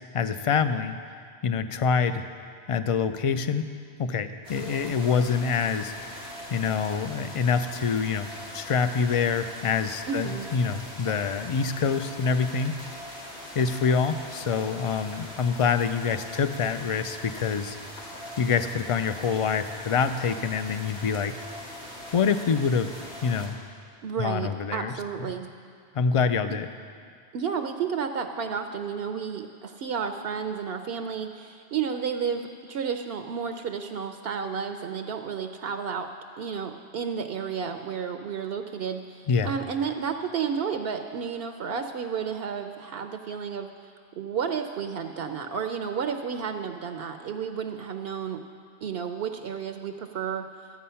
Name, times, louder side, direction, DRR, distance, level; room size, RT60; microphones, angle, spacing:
voice 1, 0.1-1.0 1.4-2.3 2.7-3.7 4.0-5.9 6.5-12.7 13.5-17.8 18.4-21.3 22.1-22.9 23.2-23.6 24.2-24.9 25.2-25.3 25.9-26.7 39.3-39.5, left 6 dB, 55° left, 10 dB, 0.4 m, -26 dB
sound 1, 4.4-23.5, left 1 dB, 70° left, 2.3 m, -41 dB
voice 2, 10.1-10.5 24.0-25.5 26.5-26.6 27.3-36.1 36.4-43.7 44.2-48.4 48.8-50.5, right 6 dB, 70° right, 6 dB, 0.8 m, -32 dB
13.5 x 8.5 x 5.6 m, 2.3 s
omnidirectional pair, 1.1 m